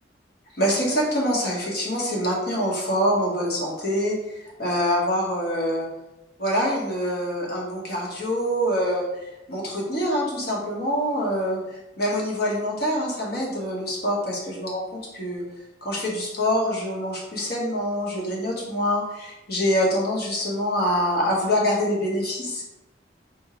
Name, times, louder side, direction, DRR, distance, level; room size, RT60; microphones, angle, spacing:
voice 1, 0.6-5.9 6.4-14.8 15.1-15.4 15.8-22.6, equal, 55° left, -3 dB, 1.4 m, -25 dB
4.5 x 3.6 x 3.1 m, 0.97 s
head